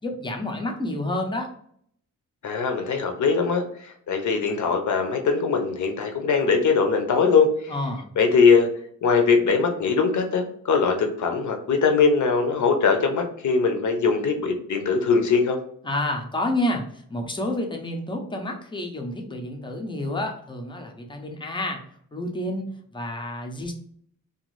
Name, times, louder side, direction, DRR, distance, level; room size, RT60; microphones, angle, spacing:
voice 1, 0.0-1.5 7.7-8.1 15.8-21.8 22.1-22.7 22.9-23.7, left 1 dB, 15° left, 2 dB, 0.5 m, -29 dB
voice 2, 2.4-7.7 8.2-8.7 9.0-15.6, left 5 dB, 60° left, 4 dB, 0.6 m, -21 dB
2.5 x 2.3 x 3.0 m, 0.64 s
wide cardioid pair, 145°, 33 cm